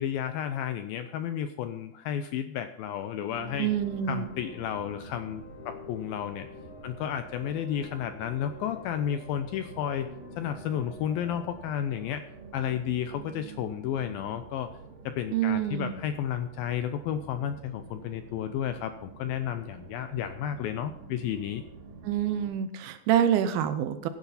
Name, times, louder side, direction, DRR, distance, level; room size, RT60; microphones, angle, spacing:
voice 1, 0.0-3.7 4.1-6.5 6.8-10.1 10.4-12.3 12.5-14.8 15.1-21.6, left 9 dB, 80° left, 9 dB, 2.1 m, -32 dB
sound 1, 3.3-15.0, left 5 dB, 50° left, 2.5 m, -51 dB
sound 2, 3.3-22.5, right 5 dB, 55° right, 3.5 m, -47 dB
voice 2, 3.6-4.3 15.3-15.9 22.0-24.1, right 10 dB, 75° right, 10 dB, 2.4 m, -27 dB
16.0 x 9.8 x 4.1 m, 0.75 s
omnidirectional pair, 4.7 m